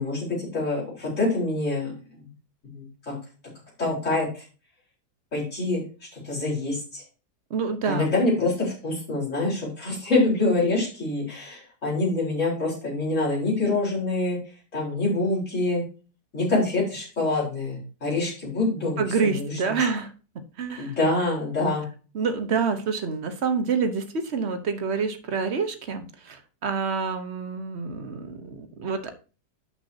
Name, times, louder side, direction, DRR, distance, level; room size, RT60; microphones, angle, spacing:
voice 1, 0.0-2.3 2.6-3.1 3.8-4.4 5.3-5.8 6.1-7.0 7.8-14.4 14.7-15.8 16.3-19.7 20.8-21.9, left 2 dB, 45° left, -5 dB, 4.7 m, -26 dB
voice 2, 7.5-8.1 19.0-20.1 20.6-20.9 22.1-29.1, right 5 dB, 45° right, 9 dB, 1.2 m, -27 dB
11.5 x 6.0 x 2.8 m, 0.35 s
omnidirectional pair, 1.8 m